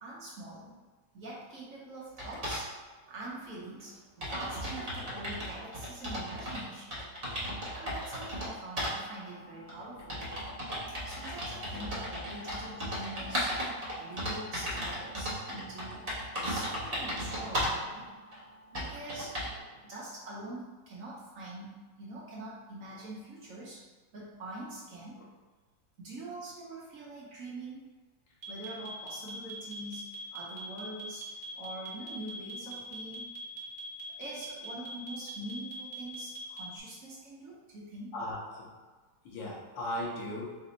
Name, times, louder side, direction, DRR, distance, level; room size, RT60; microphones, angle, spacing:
voice 1, 0.0-0.7 1.1-2.7 3.1-7.0 7.7-10.3 10.9-18.1 18.7-23.8 24.1-25.2 26.0-27.9 28.5-30.1 30.3-31.3 31.5-33.3 34.2-38.1, right 2 dB, 55° right, -5 dB, 1.1 m, -44 dB
sound 1, 2.2-2.7 3.5-3.6 3.9-4.0 4.2-6.6 6.9-8.5 8.8-8.9 9.7-17.8 18.3-18.4 18.7-19.6, equal, 30° right, 0.8 m, -35 dB
sound 2, 7.0-20.5, left 1 dB, 50° left, 0.5 m, -52 dB
sound 3, 28.4-36.8, right 1 dB, 75° right, 0.4 m, -41 dB
voice 2, 38.1-38.7 39.3-40.6, left 1 dB, 85° left, -3 dB, 1.7 m, -37 dB
4.1 x 2.7 x 3.9 m, 1.3 s
omnidirectional pair, 2.0 m